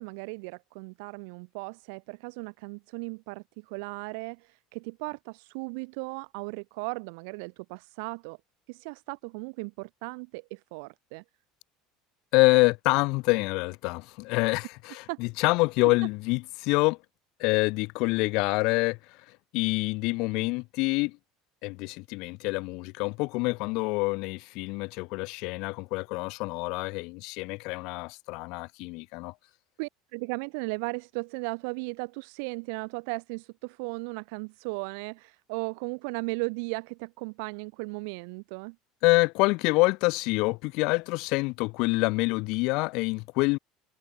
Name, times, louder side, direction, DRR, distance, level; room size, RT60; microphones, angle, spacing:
voice 1, 0.0-8.4 8.7-11.2 15.1-15.2 29.8-38.7, right 34 dB, 60° right, 1.3 m, -36 dB
voice 2, 12.3-17.0 17.4-19.0 19.5-21.2 21.6-29.3 39.0-43.6, left 25 dB, 60° left, 1.3 m, -26 dB
figure-of-eight pair, 70°, 0 cm